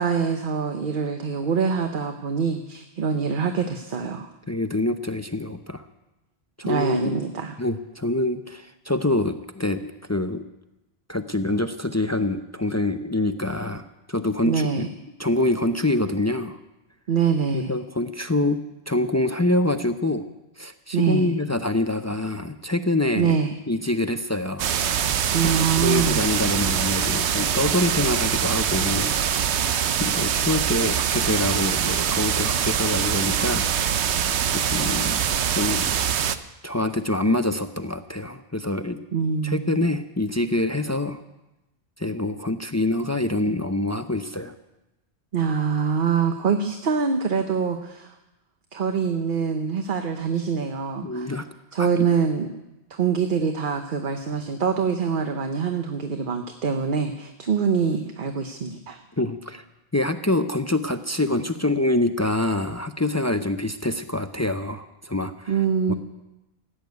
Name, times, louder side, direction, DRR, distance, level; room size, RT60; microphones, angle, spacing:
voice 1, 0.0-4.3 6.6-7.5 14.4-14.9 17.1-17.8 20.9-21.3 23.2-23.6 25.3-26.2 39.1-39.9 45.3-48.1 48.7-51.3 51.7-52.5 52.9-59.0 65.5-66.0, right 6 dB, 50° right, 6 dB, 1.0 m, -24 dB
voice 2, 4.5-5.8 6.6-7.1 7.6-10.4 11.1-14.9 15.2-16.6 17.5-18.6 18.9-20.3 20.6-23.4 23.7-24.7 25.4-29.2 30.0-33.7 34.5-35.2 35.5-36.0 36.6-39.0 39.4-41.2 42.0-44.5 51.0-51.4 51.8-51.9 59.2-59.6 59.9-65.6 65.9-66.0, left 1 dB, 20° left, 8 dB, 0.5 m, -25 dB
sound 1, 24.6-36.4, right 8 dB, 75° right, 1.0 m, -24 dB
16.0 x 8.9 x 9.4 m, 0.98 s
omnidirectional pair, 1.2 m